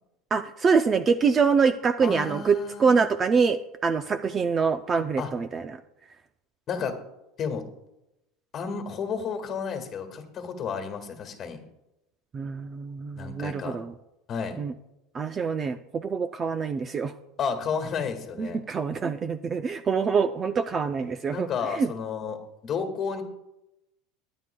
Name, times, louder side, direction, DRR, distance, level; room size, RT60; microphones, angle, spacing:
voice 1, 0.3-5.6 12.3-13.9 14.6-14.7 15.1-17.1 18.4-21.5 21.8-21.9, right 5 dB, 20° right, 10 dB, 0.4 m, -25 dB
voice 2, 2.0-3.0 5.2-5.3 6.7-6.9 7.4-7.6 8.5-11.6 13.2-13.8 14.3-14.6 17.4-18.6 21.3-23.2, left 6 dB, 30° left, 6 dB, 1.8 m, -32 dB
21.5 x 9.4 x 2.3 m, 0.90 s
supercardioid pair, 155°, 0 cm